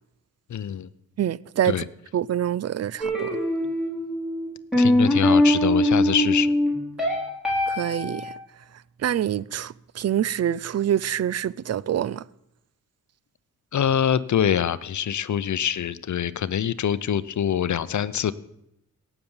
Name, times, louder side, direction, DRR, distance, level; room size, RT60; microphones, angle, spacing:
voice 1, 0.5-0.9 1.6-1.8 4.8-6.5 13.7-18.3, left 9 dB, 60° left, 0.7 m, -24 dB
voice 2, 1.2-1.8 2.1-3.3 7.7-8.3 9.0-12.2, right 10 dB, 50° right, 0.4 m, -26 dB
sound 1, 3.0-8.3, left 1 dB, ahead, 4.7 m, -22 dB
17.5 x 7.0 x 7.2 m
wide cardioid pair, 105°, 34 cm